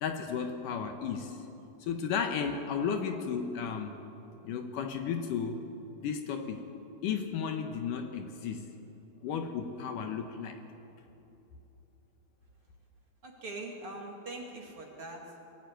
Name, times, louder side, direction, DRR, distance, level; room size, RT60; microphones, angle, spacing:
voice 1, 0.0-1.4 1.8-4.0 4.4-5.7 6.0-6.6 7.0-8.7 9.2-10.6, left 6 dB, 70° left, 6 dB, 2.4 m, -34 dB
voice 2, 13.2-15.4, right 2 dB, 40° right, 0 dB, 2.7 m, -42 dB
22.0 x 16.5 x 9.1 m, 2.9 s
omnidirectional pair, 4.2 m